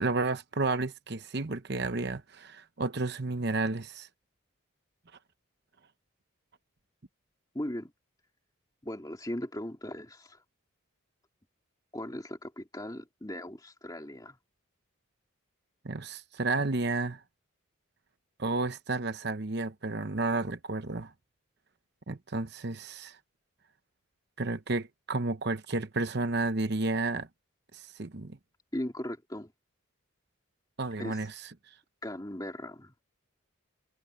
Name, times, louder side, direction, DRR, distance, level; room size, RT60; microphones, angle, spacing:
voice 1, 0.0-4.1 15.8-17.2 18.4-21.1 22.1-23.2 24.4-27.3 27.7-28.4 30.8-31.3, right 3 dB, 50° right, 0.9 m, -31 dB
voice 2, 7.5-7.9 8.8-10.4 11.9-14.4 28.7-29.5 31.0-31.2 32.0-32.9, left 1 dB, 15° left, 2.3 m, -38 dB
head